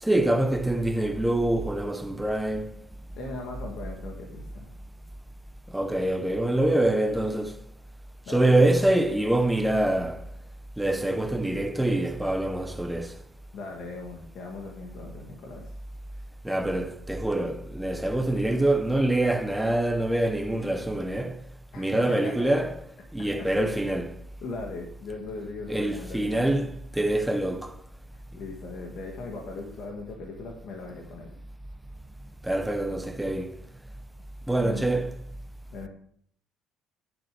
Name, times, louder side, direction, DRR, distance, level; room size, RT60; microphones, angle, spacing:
voice 1, 0.0-2.8 5.7-7.6 8.3-10.2 10.8-13.2 16.4-21.4 21.8-22.7 23.1-24.2 25.7-27.8 32.4-33.6 34.5-35.1, right 1 dB, 5° right, 0.6 m, -25 dB
voice 2, 3.2-4.7 8.3-8.7 13.5-15.7 21.7-22.6 23.3-23.7 24.4-26.5 28.1-31.3 34.6-34.9 35.7-35.9, left 3 dB, 45° left, 1.9 m, -39 dB
10.5 x 7.0 x 6.7 m
cardioid pair, 180°, 0 cm